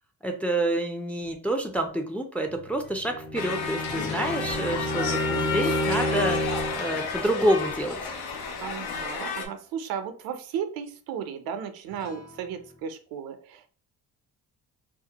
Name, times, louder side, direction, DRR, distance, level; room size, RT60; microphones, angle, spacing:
voice 1, 0.2-8.1, right 1 dB, 5° left, 4 dB, 0.3 m, -28 dB
sound 1, 2.4-8.8 9.1-9.5 11.9-12.8, left 4 dB, 60° left, 1.1 m, -47 dB
Bowed string instrument, 3.0-6.9, equal, 40° left, 0.8 m, -30 dB
sound 2, 3.3-9.5, left 5 dB, 85° left, 0.6 m, -32 dB
voice 2, 8.6-13.7, right 8 dB, 80° right, 8 dB, 0.5 m, -35 dB
2.4 x 2.0 x 2.8 m, 0.42 s
cardioid pair, 80°, 35 cm